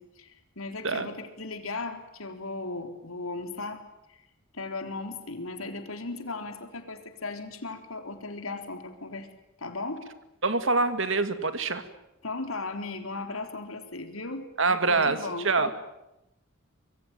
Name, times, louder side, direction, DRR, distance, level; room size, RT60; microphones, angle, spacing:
voice 1, 0.0-3.8 4.1-4.2 4.5-9.3 9.6-10.0 12.2-14.5 14.9-15.7, left 3 dB, 90° left, 6 dB, 3.9 m, -36 dB
voice 2, 10.4-11.8 14.6-15.2 15.4-15.7, right 3 dB, 65° right, 11 dB, 2.3 m, -25 dB
25.0 x 22.5 x 9.1 m, 0.91 s
head